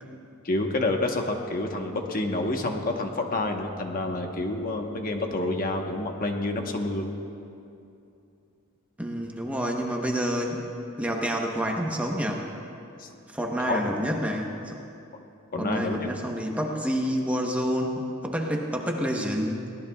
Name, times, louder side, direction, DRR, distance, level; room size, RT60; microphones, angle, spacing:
voice 1, 0.4-7.1 13.0-13.1 13.7-13.8 15.5-16.0, left 2 dB, 40° left, 3 dB, 1.1 m, -28 dB
voice 2, 9.0-10.6 11.0-12.4 13.3-14.8 15.6-19.6, equal, 5° right, 0 dB, 1.0 m, -28 dB
23.5 x 18.0 x 2.3 m, 2.7 s
head